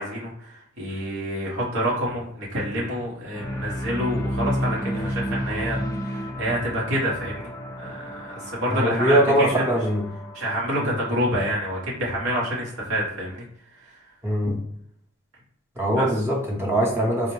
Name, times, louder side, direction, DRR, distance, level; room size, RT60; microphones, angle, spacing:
voice 1, 0.0-7.5 7.8-9.5 10.3-13.4 14.4-14.5 16.0-16.1, equal, 75° right, -5 dB, 1.1 m, -27 dB
sound 1, 3.3-11.6, equal, 15° left, 0.4 m, -32 dB
voice 2, 8.7-10.0 10.8-10.9 14.2-14.5 15.8-17.3, right 1 dB, 10° right, -2 dB, 0.8 m, -22 dB
4.0 x 2.1 x 3.1 m, 0.69 s
head